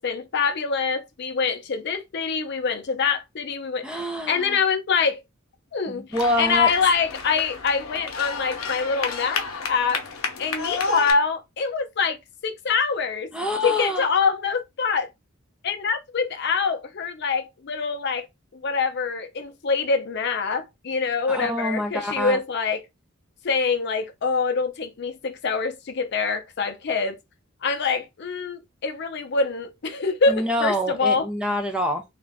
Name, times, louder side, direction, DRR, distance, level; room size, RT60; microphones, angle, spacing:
voice 1, 0.0-5.2 5.7-6.1 6.4-10.0 10.4-12.2 12.4-13.3 13.6-15.1 15.6-18.3 18.5-22.9 23.4-27.2 27.6-31.3, left 5 dB, 55° left, 0.5 m, -25 dB
voice 2, 3.8-4.6 5.9-6.7 13.3-14.1 21.3-22.4 30.3-32.0, left 1 dB, 5° right, 0.4 m, -26 dB
sound 1, 6.1-11.1, left 4 dB, 90° left, 0.7 m, -31 dB
2.4 x 2.2 x 3.4 m
head